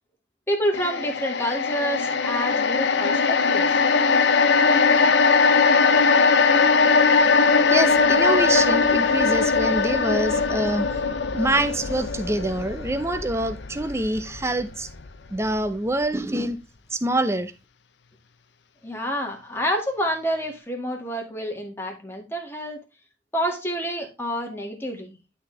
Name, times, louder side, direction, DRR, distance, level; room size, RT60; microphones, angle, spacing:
voice 1, 0.5-3.8 18.8-22.8 23.3-25.2, equal, 10° left, 1.8 m, -28 dB
sound 1, 0.7-15.1 15.4-15.6, left 4 dB, 65° left, 0.7 m, -20 dB
voice 2, 7.7-10.9 11.3-14.9 15.3-16.6 16.9-17.5, right 1 dB, 15° right, 0.6 m, -25 dB
11.5 x 4.3 x 3.2 m
head